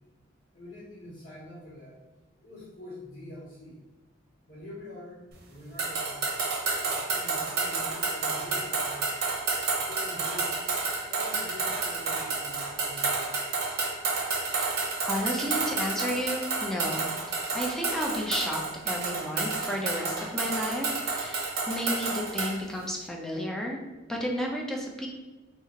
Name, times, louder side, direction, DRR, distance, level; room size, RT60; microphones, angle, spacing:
voice 1, 0.5-2.0 2.4-3.8 4.4-6.2 6.8-9.0 9.7-10.6 11.0-13.4, left 1 dB, 55° left, -11 dB, 1.3 m, -45 dB
sound 1, 5.8-22.6, right 4 dB, 55° right, 0.7 m, -30 dB
voice 2, 15.0-17.1 17.5-23.8 24.1-25.1, equal, 5° left, -1 dB, 0.5 m, -32 dB
2.8 x 2.4 x 3.9 m, 1.2 s
head